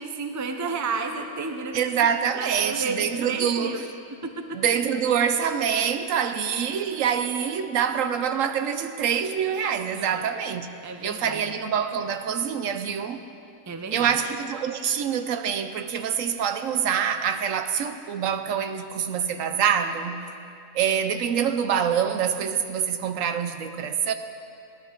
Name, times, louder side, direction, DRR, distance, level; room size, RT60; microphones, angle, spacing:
voice 1, 0.0-1.8 2.3-3.8 4.2-4.6 9.9-10.2 10.8-11.4 13.7-14.1, right 4 dB, 20° right, 5 dB, 0.4 m, -32 dB
voice 2, 1.7-3.7 4.5-10.7 11.0-13.2 13.9-20.2 20.7-24.1, right 8 dB, 70° right, 8 dB, 1.0 m, -25 dB
17.5 x 11.0 x 3.8 m, 2.5 s
omnidirectional pair, 1.5 m